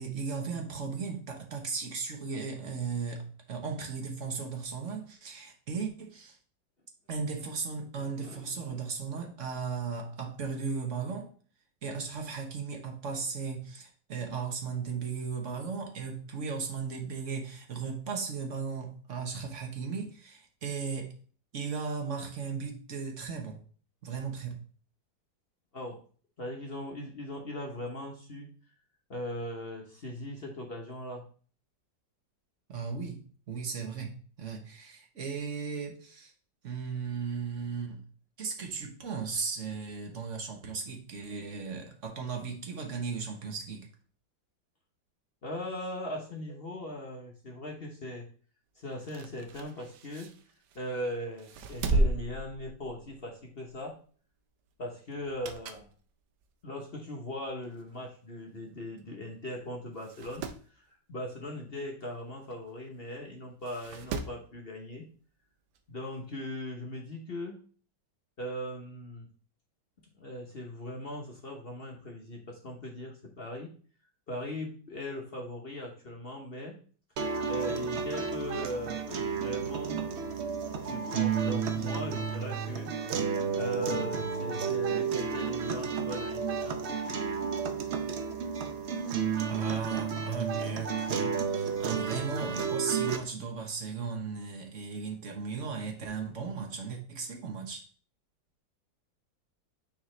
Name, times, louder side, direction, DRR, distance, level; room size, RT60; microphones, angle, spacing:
voice 1, 0.0-6.4 7.1-11.3 11.8-21.1 21.5-23.6 24.0-24.6 32.7-36.3 36.6-38.0 38.4-43.9 89.5-97.8, right 5 dB, 45° right, 3 dB, 1.2 m, -36 dB
voice 2, 7.9-8.4 25.7-26.0 26.4-28.5 29.1-31.2 45.4-48.3 48.7-50.3 50.7-54.0 54.8-55.9 56.6-60.5 60.7-65.1 65.9-67.6 68.4-69.3 70.2-73.7 74.3-76.8 77.4-80.1 80.8-83.0 83.6-87.2, left 1 dB, 45° left, 1 dB, 0.8 m, -39 dB
sound 1, 49.0-50.9 51.4-53.3 53.6-53.8 55.1-56.0 56.4-56.5 57.4-57.5 57.7-57.8 58.0-58.1 59.0-59.2 59.5-59.6 60.0-60.7 62.5-62.6 63.6-64.5 65.8-65.9, right 2 dB, 70° right, 1.2 m, -34 dB
sound 2, 77.2-93.2, right 6 dB, 85° right, 0.6 m, -32 dB
9.1 x 4.1 x 3.2 m, 0.43 s
omnidirectional pair, 2.1 m